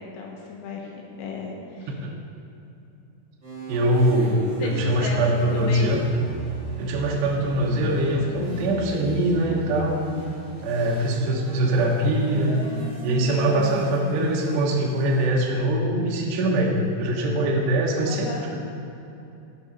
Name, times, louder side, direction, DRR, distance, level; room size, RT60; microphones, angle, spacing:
voice 1, 0.2-0.9 1.2-1.9 4.6-5.9 18.1-18.4, left 3 dB, 90° left, -1 dB, 3.8 m, -34 dB
sound 1, 3.4-15.3, equal, 35° right, 1.0 m, -35 dB
voice 2, 3.7-6.1 6.8-10.0 10.6-12.6 13.0-18.6, right 1 dB, 70° right, -2 dB, 2.9 m, -23 dB
12.5 x 6.1 x 5.5 m, 2.8 s
omnidirectional pair, 5.6 m